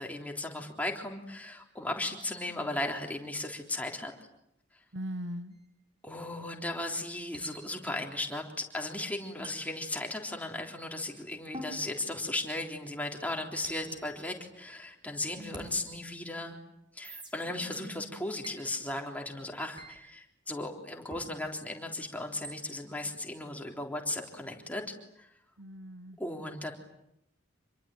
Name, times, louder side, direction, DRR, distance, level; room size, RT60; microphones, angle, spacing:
voice 1, 0.0-4.1 6.0-8.4 8.7-16.6 16.9-24.8 25.2-25.3 26.2-26.7, left 2 dB, 10° left, 2 dB, 3.6 m, -36 dB
voice 2, 4.9-5.6 15.4-15.8 17.5-18.2 25.6-26.2, equal, 75° right, 12 dB, 1.4 m, -41 dB
sound 1, 5.5-5.7 7.3-8.1 9.4-10.5 11.5-12.8 13.6-15.0 15.5-15.7 17.0-17.3 18.4-18.6 19.8-20.0 21.1-21.3 22.4-22.6, right 1 dB, 25° right, 5.5 m, -47 dB
27.0 x 22.5 x 9.1 m, 0.80 s
head